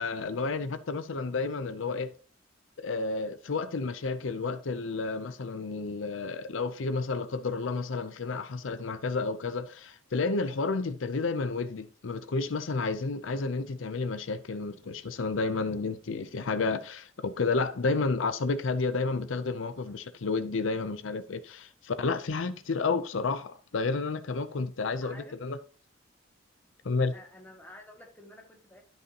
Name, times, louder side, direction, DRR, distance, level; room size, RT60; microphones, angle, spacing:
voice 1, 0.0-2.1 2.8-25.6 26.8-27.2, left 3 dB, 80° left, 0.6 m, -31 dB
voice 2, 25.0-25.4 27.1-28.8, left 1 dB, 10° left, 1.9 m, -50 dB
12.5 x 5.6 x 2.9 m
head